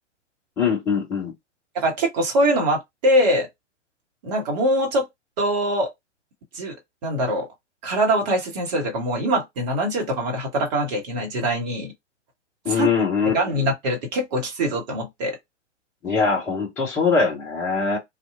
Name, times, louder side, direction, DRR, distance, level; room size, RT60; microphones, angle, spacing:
voice 1, 0.6-1.3 12.6-13.3 16.0-18.0, left 5 dB, 5° left, 0.5 m, -22 dB
voice 2, 1.7-3.5 4.2-5.1 5.4-5.9 6.5-6.7 7.0-7.5 7.8-11.9 12.7-12.9 13.3-15.4, right 1 dB, 35° right, 1.1 m, -23 dB
2.7 x 2.3 x 2.4 m
figure-of-eight pair, 115°, 37 cm